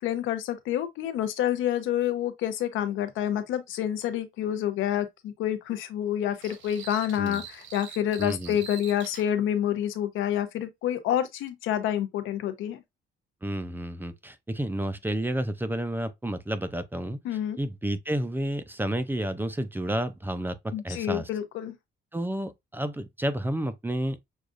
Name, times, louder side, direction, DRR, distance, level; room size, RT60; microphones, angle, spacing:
voice 1, 0.0-12.8 17.2-17.6 20.7-21.8, left 11 dB, 90° left, 0.7 m, -28 dB
sound 1, 6.4-9.3, right 7 dB, 70° right, 0.9 m, -44 dB
voice 2, 8.2-8.6 13.4-17.2 17.6-21.3 22.1-24.2, right 1 dB, 10° right, 0.5 m, -31 dB
6.3 x 2.4 x 2.4 m
cardioid pair, 90°, 20 cm